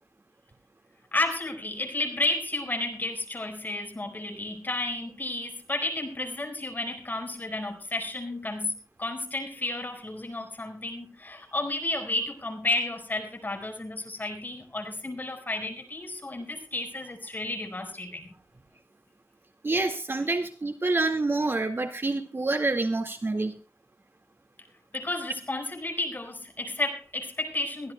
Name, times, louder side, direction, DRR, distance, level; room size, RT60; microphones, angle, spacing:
voice 1, 1.1-18.3 24.9-27.9, left 2 dB, 35° left, 5 dB, 4.5 m, -32 dB
voice 2, 19.6-23.5, right 2 dB, 45° right, 5 dB, 2.0 m, -27 dB
22.0 x 16.0 x 2.3 m, 0.31 s
wide cardioid pair, 80°, 6 cm